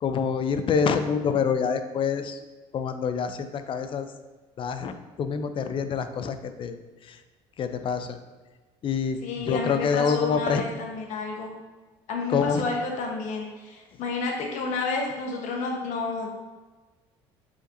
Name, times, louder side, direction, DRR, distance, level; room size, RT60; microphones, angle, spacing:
voice 1, 0.0-2.4 2.7-4.1 4.6-6.8 7.0-7.2 7.6-8.2 8.8-10.6 12.3-12.6 13.9-14.0, left 6 dB, 40° left, 9 dB, 0.4 m, -26 dB
voice 2, 9.2-11.5 12.1-16.3, left 3 dB, 65° left, 1 dB, 1.0 m, -30 dB
4.9 x 4.0 x 2.6 m, 1.3 s
supercardioid pair, 85°, 13 cm